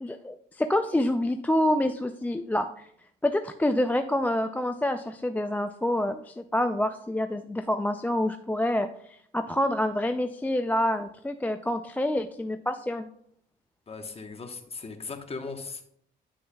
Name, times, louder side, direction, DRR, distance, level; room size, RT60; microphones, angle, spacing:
voice 1, 0.0-2.8 3.2-13.1, left 1 dB, 10° left, 7 dB, 0.3 m, -27 dB
voice 2, 13.9-15.8, left 4 dB, 30° left, 5 dB, 1.1 m, -38 dB
9.7 x 6.3 x 2.2 m, 0.67 s
cardioid pair, 90°, 20 cm